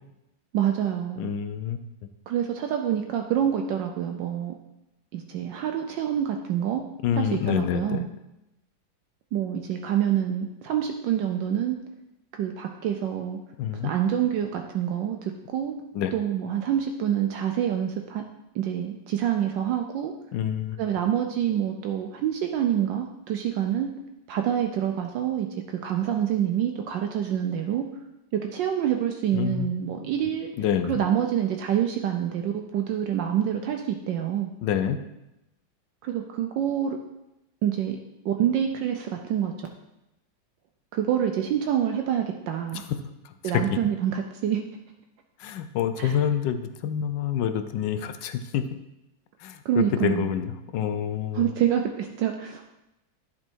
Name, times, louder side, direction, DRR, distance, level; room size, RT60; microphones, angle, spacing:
voice 1, 0.5-1.3 2.3-4.5 5.1-6.8 7.2-8.1 9.3-11.8 12.4-13.4 13.8-15.7 16.1-18.2 18.5-20.1 20.8-23.9 24.3-27.8 28.3-30.5 30.9-34.5 36.0-37.0 37.6-38.0 38.2-39.7 40.9-42.8 43.4-44.6 46.0-46.2 49.6-50.4 51.3-52.7, right 10 dB, 75° right, 4 dB, 1.2 m, -26 dB
voice 2, 1.2-1.8 7.0-8.1 13.6-13.9 15.9-16.1 20.3-20.8 29.3-29.8 30.6-31.0 34.6-35.0 43.2-43.8 45.4-48.6 49.4-51.5, left 9 dB, 75° left, 10 dB, 1.2 m, -27 dB
10.5 x 4.4 x 4.5 m, 0.92 s
omnidirectional pair, 2.1 m